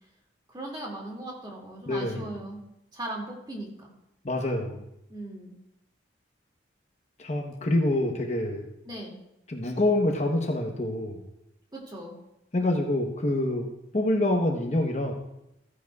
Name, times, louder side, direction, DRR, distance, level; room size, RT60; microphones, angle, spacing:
voice 1, 0.5-2.6 2.9-3.9 5.1-5.6 8.9-9.2 11.7-12.2, right 1 dB, 25° right, -2 dB, 2.2 m, -38 dB
voice 2, 1.9-2.2 4.2-4.8 7.2-8.7 9.5-11.2 12.5-15.1, left 1 dB, 35° left, 2 dB, 0.9 m, -26 dB
14.5 x 9.9 x 2.3 m, 0.85 s
head